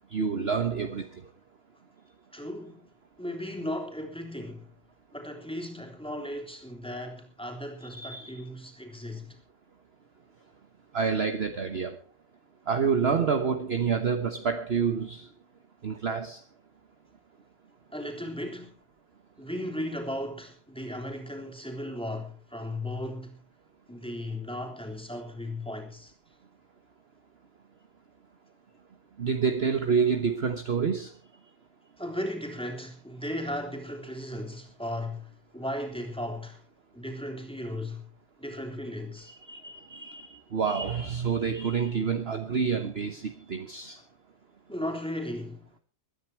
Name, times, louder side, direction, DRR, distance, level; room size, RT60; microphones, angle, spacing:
voice 1, 0.1-1.2 7.9-8.3 10.9-12.0 12.7-15.3 15.8-16.4 29.2-31.1 39.3-44.0, right 6 dB, 45° right, 1.3 m, -28 dB
voice 2, 2.3-2.9 3.2-4.7 5.1-9.4 17.9-18.8 19.4-23.4 23.9-26.1 32.0-36.6 36.9-38.1 38.4-39.3 44.7-45.7, left 1 dB, 5° left, 3.4 m, -36 dB
22.0 x 9.8 x 4.5 m
omnidirectional pair, 1.6 m